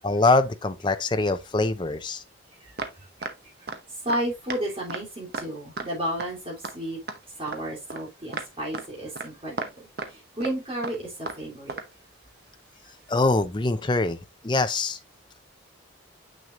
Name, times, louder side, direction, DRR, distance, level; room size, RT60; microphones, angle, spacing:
voice 1, 0.0-2.2 13.1-14.2 14.4-15.0, left 3 dB, 25° left, 0.5 m, -23 dB
sound 1, 2.8-3.4 3.7-3.8 4.1-4.2 4.5-4.6 4.9-5.0 5.3-5.5 5.8-5.9 6.2-6.3 6.6-6.8 7.1-7.6 7.9-8.0 8.3-8.5 8.7-8.9 9.2-9.3 9.6-10.1 10.4-10.6 10.8-11.4 11.7-11.9 13.1-13.2, right 3 dB, 50° right, 0.9 m, -34 dB
voice 2, 4.0-7.0 7.4-11.8, right 1 dB, 30° right, 3.2 m, -32 dB
6.5 x 6.3 x 2.5 m
head